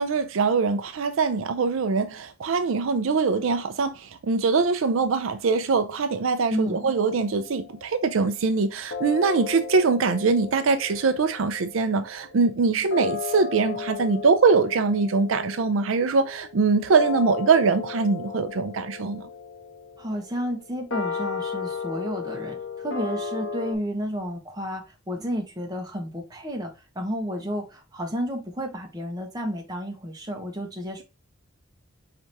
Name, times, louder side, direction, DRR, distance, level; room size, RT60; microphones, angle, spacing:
voice 1, 0.0-19.3, right 4 dB, 80° right, 0.5 m, -23 dB
voice 2, 6.5-6.9 20.0-31.0, equal, 20° right, 0.9 m, -31 dB
sound 1, 6.8-8.1 8.9-23.8, left 6 dB, 85° left, 1.3 m, -35 dB
4.6 x 3.3 x 2.7 m
head